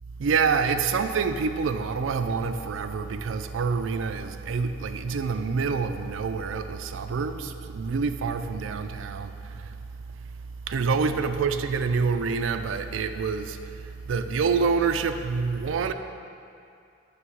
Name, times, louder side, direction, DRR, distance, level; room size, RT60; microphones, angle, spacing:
voice 1, 0.2-9.8 10.7-15.9, right 5 dB, 80° right, 0.4 m, -27 dB
7.7 x 3.3 x 6.2 m
head